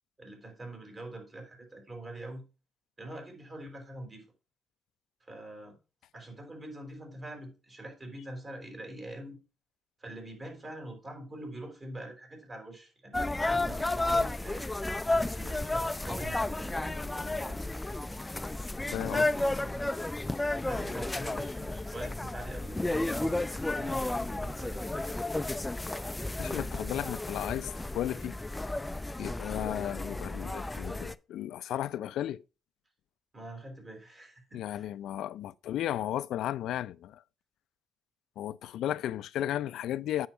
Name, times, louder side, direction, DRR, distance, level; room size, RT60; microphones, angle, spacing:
voice 1, 0.2-2.4 3.0-4.2 5.3-5.8 6.1-9.4 10.0-14.7 15.3-17.6 18.8-19.8 20.5-25.6 33.3-34.9, right 1 dB, 30° right, 4.5 m, -45 dB
sound 1, 13.1-31.1, left 2 dB, 15° left, 0.5 m, -32 dB
voice 2, 18.9-19.3 26.4-28.4 29.2-32.4 34.5-37.2 38.4-40.3, left 12 dB, 80° left, 0.4 m, -34 dB
8.7 x 6.4 x 4.5 m
cardioid pair, 90°, 0 cm